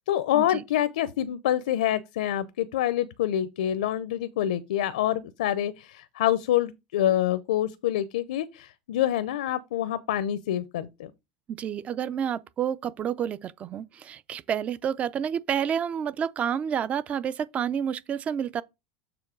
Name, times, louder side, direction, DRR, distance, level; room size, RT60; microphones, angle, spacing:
voice 1, 0.1-11.1, left 12 dB, 90° left, 0.6 m, -26 dB
voice 2, 11.5-18.6, right 8 dB, 30° right, 0.4 m, -29 dB
6.9 x 3.0 x 5.9 m
supercardioid pair, 125°, 4 cm